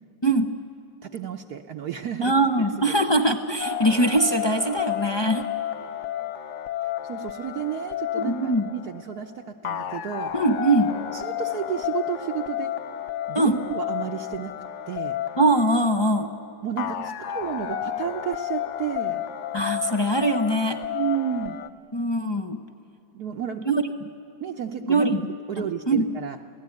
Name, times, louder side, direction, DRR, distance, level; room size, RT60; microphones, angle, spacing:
voice 1, 1.0-2.3 2.8-3.0 7.0-10.3 11.1-12.7 13.3-14.5 14.9-15.2 16.6-19.2 20.9-21.6 23.1-23.8 24.4-25.2 25.5-26.4, right 9 dB, 60° right, 3 dB, 1.2 m, -32 dB
voice 2, 2.2-5.5 8.1-8.7 10.3-10.9 13.3-13.6 15.4-16.3 19.5-20.8 21.9-22.6 23.7-23.8 24.8-25.3 25.6-26.1, right 1 dB, 30° left, 4 dB, 0.4 m, -22 dB
sound 1, 3.6-21.7, left 11 dB, 65° left, 0.7 m, -32 dB
27.0 x 17.5 x 9.5 m, 2.8 s
omnidirectional pair, 2.1 m